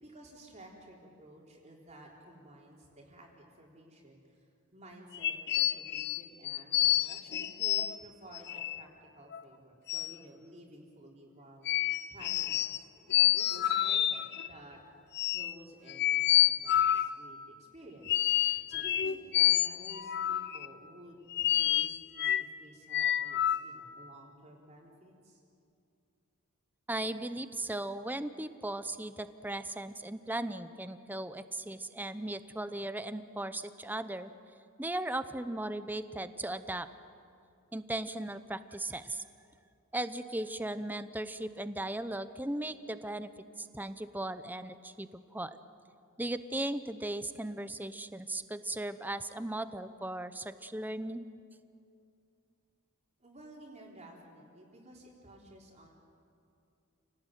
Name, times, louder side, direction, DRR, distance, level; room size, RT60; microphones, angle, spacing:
voice 1, 0.0-4.4 4.7-8.9 9.1-11.7 12.1-14.8 15.3-25.4 53.2-55.9, right 1 dB, 30° right, -1 dB, 3.8 m, -53 dB
sound 1, 5.1-8.0 8.3-8.8 9.3-9.4 9.9-10.1 11.7-12.8 13.1-14.5 15.1-15.5 15.9-17.2 18.1-20.7 21.3-22.5 22.9-23.6, left 12 dB, 50° left, 0.6 m, -28 dB
voice 2, 26.9-34.3 34.8-36.9 37.7-39.2 39.9-43.3 43.6-45.6 46.2-51.3, right 1 dB, 10° right, 12 dB, 0.8 m, -37 dB
29.0 x 18.5 x 9.1 m, 2.5 s
head